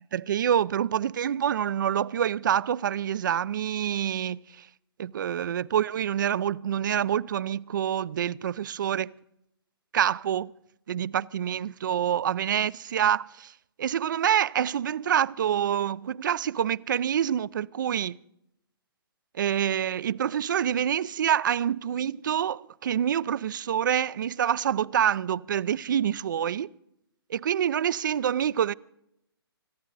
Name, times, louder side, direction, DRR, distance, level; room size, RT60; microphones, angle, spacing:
voice 1, 0.0-4.7 5.0-9.1 9.9-10.5 10.9-13.5 13.8-18.2 19.3-26.7 27.3-28.7, right 9 dB, 50° right, 0.4 m, -26 dB
24.5 x 10.0 x 4.0 m
hypercardioid pair, 160°, 13 cm